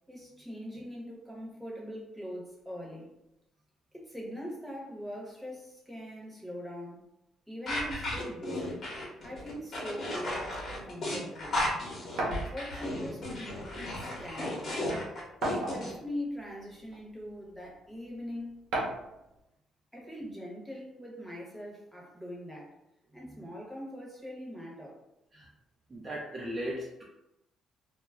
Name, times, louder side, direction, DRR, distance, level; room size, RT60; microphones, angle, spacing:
voice 1, 0.1-3.1 3.9-7.0 7.5-8.9 9.2-11.6 12.2-14.8 15.5-18.6 19.9-22.8 23.1-25.0, equal, ahead, -4 dB, 0.8 m, -42 dB
sound 1, 7.7-15.9, left 1 dB, 45° left, 0.9 m, -34 dB
sound 2, 12.2-12.5 13.6-13.7 14.1-14.2 15.4-16.1 16.9-17.0 18.7-19.1, right 2 dB, 80° right, 0.7 m, -32 dB
voice 2, 25.9-27.0, equal, 25° right, -3 dB, 0.4 m, -37 dB
2.2 x 2.0 x 3.5 m, 0.87 s
cardioid pair, 110°, 0 cm